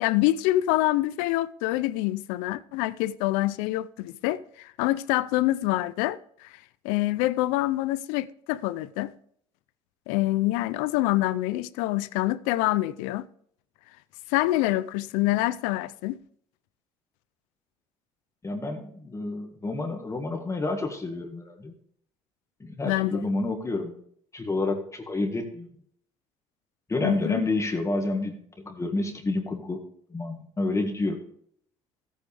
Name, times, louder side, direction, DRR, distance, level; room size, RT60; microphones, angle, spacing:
voice 1, 0.0-6.5 6.8-9.1 10.1-13.3 14.3-16.2 22.9-23.2 27.0-27.4, left 17 dB, 85° left, 0.5 m, -26 dB
voice 2, 18.4-21.7 22.6-24.0 24.3-25.7 26.9-29.8 30.1-31.2, left 2 dB, 25° left, 1.8 m, -29 dB
14.0 x 8.7 x 3.4 m
supercardioid pair, 80°, 13 cm